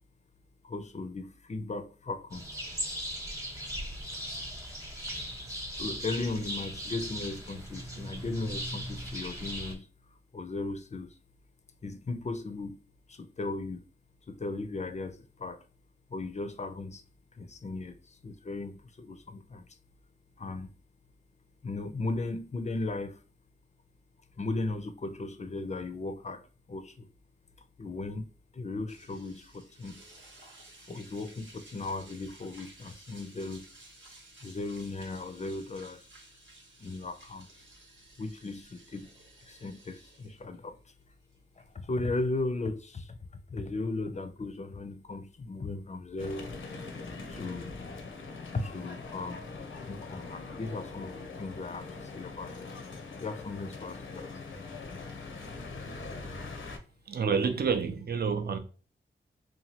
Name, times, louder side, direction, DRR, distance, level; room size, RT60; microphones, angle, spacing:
voice 1, 0.6-2.5 5.8-9.9 10.3-11.2 11.8-12.8 13.1-13.8 14.3-15.6 16.1-17.0 17.3-19.7 20.4-20.7 21.6-23.2 24.4-26.4 26.7-27.1 27.8-28.3 28.5-30.0 30.9-33.7 34.4-36.1 36.8-37.5 38.2-39.1 39.4-40.8 41.6-43.2 43.5-46.5 47.3-47.7 48.5-49.4 49.8-52.7 53.2-54.3, left 2 dB, 35° left, 0.4 m, -36 dB
sound 1, 2.3-9.7, equal, 15° right, 0.9 m, -38 dB
sound 2, 28.9-42.4, right 2 dB, 75° right, 1.0 m, -55 dB
sound 3, 46.2-56.8, left 3 dB, 80° left, 0.6 m, -42 dB
voice 2, 57.1-58.6, right 6 dB, 50° right, 0.5 m, -28 dB
2.9 x 2.2 x 2.8 m
cardioid pair, 50°, 20 cm